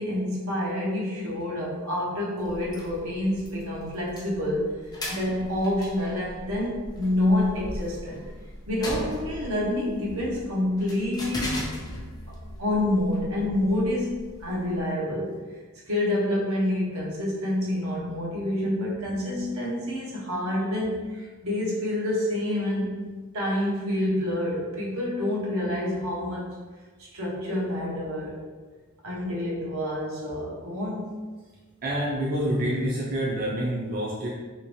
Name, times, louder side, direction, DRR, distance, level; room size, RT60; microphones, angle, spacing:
voice 1, 0.0-4.7 5.1-8.2 8.7-11.8 12.3-15.4 15.9-23.0 23.3-26.5 27.0-28.4 29.0-31.1, left 1 dB, 80° right, -5 dB, 1.0 m, -28 dB
sound 1, 2.4-14.8, left 1 dB, 15° left, 0.4 m, -39 dB
voice 2, 31.8-34.3, right 1 dB, 40° right, -6 dB, 0.5 m, -27 dB
3.0 x 2.9 x 3.1 m, 1.4 s
head